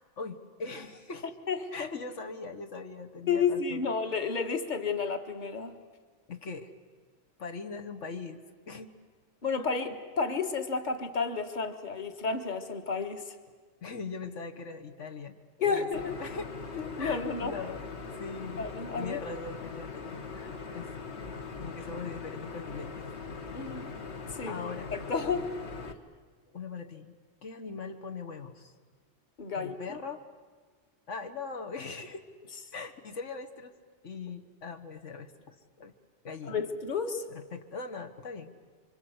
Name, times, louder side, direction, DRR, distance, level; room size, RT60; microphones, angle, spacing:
voice 1, 0.2-1.3 1.7-3.9 6.3-6.7 7.4-8.4 8.7-8.9 13.8-15.9 16.2-16.5 17.0-17.8 18.2-18.7 19.0-20.9 21.3-23.1 24.5-24.9 26.5-28.7 29.5-30.2 31.1-32.2 32.7-33.7 34.0-35.9 36.2-36.6 37.3-38.5, left 4 dB, 85° left, 6 dB, 1.7 m, -41 dB
voice 2, 1.5-1.9 3.3-5.8 9.4-13.4 15.6-16.2 16.7-17.5 18.6-19.2 23.5-23.9 24.3-24.6 24.9-25.6 29.4-30.0 36.5-37.3, left 5 dB, 40° left, 7 dB, 1.7 m, -31 dB
sound 1, 15.9-25.9, left 4 dB, 65° left, 1.8 m, -41 dB
26.5 x 25.0 x 8.0 m, 1.5 s
omnidirectional pair, 1.2 m